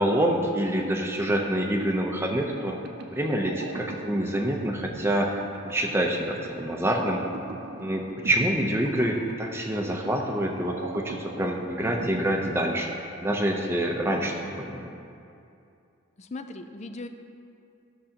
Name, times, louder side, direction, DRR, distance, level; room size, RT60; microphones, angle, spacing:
voice 1, 0.0-2.8 3.1-7.2 7.8-14.8, right 1 dB, 10° right, 1 dB, 0.7 m, -26 dB
sound 1, 2.6-13.2, right 2 dB, 50° right, 0.5 m, -42 dB
voice 2, 16.2-17.1, left 2 dB, 30° left, 8 dB, 0.4 m, -38 dB
14.5 x 6.3 x 2.9 m, 2.6 s
head